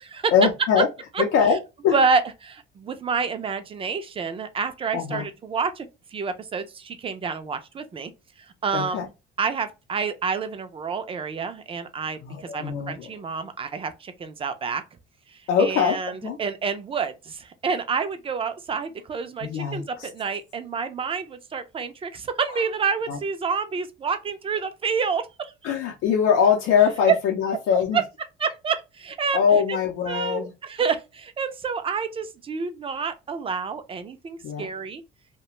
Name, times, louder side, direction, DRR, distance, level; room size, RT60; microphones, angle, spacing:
voice 1, 0.3-0.9 1.2-1.6 1.8-2.0 4.9-5.2 8.7-9.1 12.2-13.1 15.5-16.4 19.4-20.1 23.1-23.2 25.6-28.0 29.3-30.5 34.4-34.7, left 7 dB, 85° left, 0.6 m, -22 dB
voice 2, 1.9-8.1 8.4-9.1 9.4-14.8 15.3-25.7 27.1-27.2 27.9-28.0 28.4-29.4 29.7-29.8 30.1-35.0, right 5 dB, 25° right, 0.4 m, -28 dB
2.4 x 2.2 x 2.9 m
cardioid pair, 120°, 21 cm